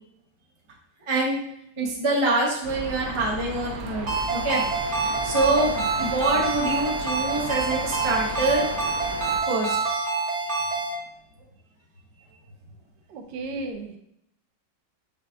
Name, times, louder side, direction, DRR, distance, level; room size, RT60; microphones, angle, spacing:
voice 1, 1.1-1.4 1.8-4.6 4.9-8.7 9.5-9.8, right 2 dB, 30° right, -3 dB, 0.6 m, -25 dB
sound 1, 2.6-9.4, right 3 dB, 65° right, 1.0 m, -36 dB
Ringtone, 4.1-10.9, right 3 dB, 45° right, 1.2 m, -27 dB
voice 2, 5.5-5.8 13.1-14.0, right 3 dB, 80° right, 5 dB, 1.3 m, -35 dB
5.2 x 2.4 x 3.4 m, 0.76 s
omnidirectional pair, 1.9 m